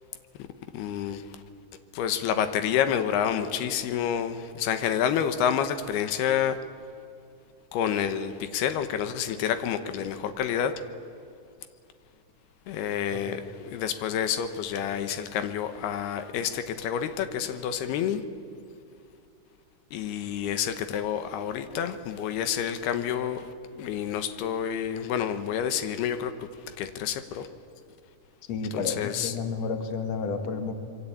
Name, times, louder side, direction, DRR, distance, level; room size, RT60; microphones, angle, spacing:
voice 1, 0.7-1.4 1.9-6.6 7.7-10.7 12.7-18.2 19.9-23.5 23.7-27.5 28.7-29.3, left 9 dB, 85° left, 10 dB, 3.2 m, -29 dB
voice 2, 28.5-30.7, left 5 dB, 50° left, 7 dB, 2.6 m, -31 dB
26.5 x 24.0 x 8.6 m, 2.4 s
omnidirectional pair, 4.5 m